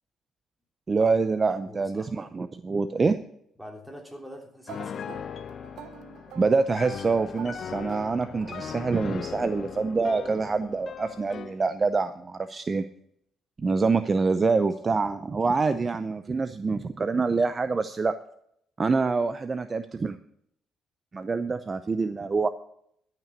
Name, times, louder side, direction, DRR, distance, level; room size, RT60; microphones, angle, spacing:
voice 1, 0.9-3.2 6.4-12.8 13.6-18.1 18.8-20.2 21.1-22.5, right 4 dB, 35° right, 11 dB, 0.6 m, -26 dB
voice 2, 1.7-2.1 3.6-5.2, equal, 5° right, 1 dB, 3.2 m, -44 dB
Piano, 4.7-11.6, left 8 dB, 55° left, 0.3 m, -39 dB
sound 1, 4.7-9.3, right 8 dB, 80° right, 0.9 m, -47 dB
12.0 x 6.0 x 8.4 m, 0.71 s
cardioid pair, 90°, 0 cm